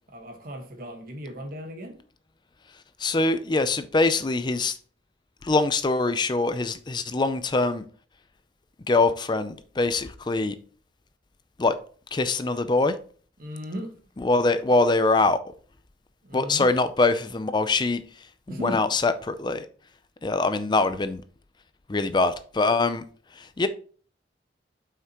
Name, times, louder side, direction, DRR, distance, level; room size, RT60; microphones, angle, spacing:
voice 1, 0.1-2.0 13.4-13.9 16.2-16.7 18.5-18.8, equal, 55° right, 1.5 m, -36 dB
voice 2, 3.0-4.8 5.4-7.8 8.9-10.6 11.6-11.8 12.1-12.9 14.2-15.4 16.3-18.0 18.5-19.6 20.2-21.2 21.9-23.0 23.4-23.7, left 3 dB, 25° left, 0.4 m, -23 dB
7.8 x 5.8 x 3.0 m
head